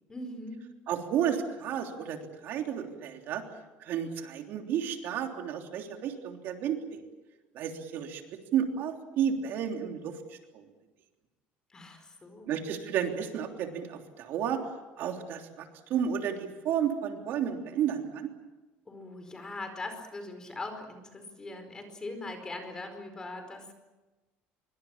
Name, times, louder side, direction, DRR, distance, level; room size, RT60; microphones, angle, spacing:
voice 1, 0.1-0.7 11.7-12.5 18.9-23.7, left 2 dB, 15° left, 7 dB, 4.6 m, -41 dB
voice 2, 0.9-3.4 3.8-7.0 7.5-10.6 12.5-14.6 15.0-18.3, right 8 dB, 55° right, 4 dB, 3.3 m, -32 dB
25.5 x 24.0 x 7.4 m, 1.1 s
cardioid pair, 160°, 4 cm